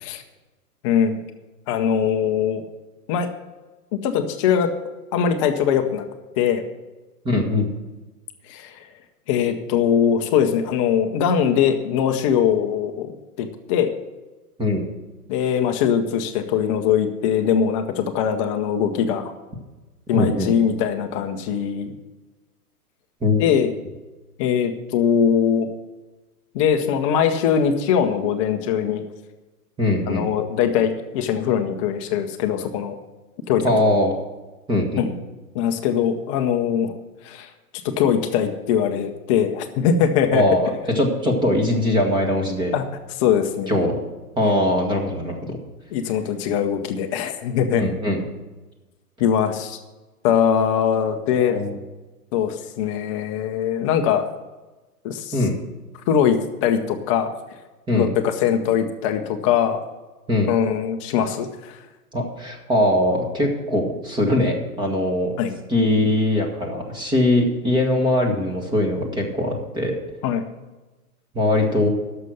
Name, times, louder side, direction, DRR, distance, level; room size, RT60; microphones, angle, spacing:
voice 1, 0.8-1.2 1.7-2.6 3.1-3.3 3.9-4.7 5.1-6.0 6.4-6.6 8.5-8.8 9.3-13.9 15.3-19.3 20.1-22.0 23.4-23.7 24.4-25.7 26.5-29.0 30.1-33.0 33.5-33.6 35.0-35.1 35.5-36.9 37.2-37.5 37.8-40.4 42.7-42.8 43.2-43.7 44.4-44.5 45.9-47.8 49.2-49.8 50.2-51.6 52.3-54.3 55.0-55.4 56.1-57.3 57.9-59.8 60.5-61.8 65.4-65.5 70.2-70.4, left 8 dB, 20° left, 6 dB, 0.7 m, -21 dB
voice 2, 7.2-7.7 14.6-14.8 20.1-20.5 23.2-23.5 29.8-30.2 33.6-34.1 34.7-35.1 40.3-40.7 40.9-42.7 43.7-44.0 44.4-45.6 47.7-48.2 51.5-51.8 55.3-55.5 57.9-58.1 60.3-60.5 62.1-65.3 65.7-70.0 71.3-71.9, left 1 dB, 10° right, 1 dB, 1.6 m, -21 dB
11.0 x 6.7 x 7.7 m, 1.2 s
hypercardioid pair, 145°, 46 cm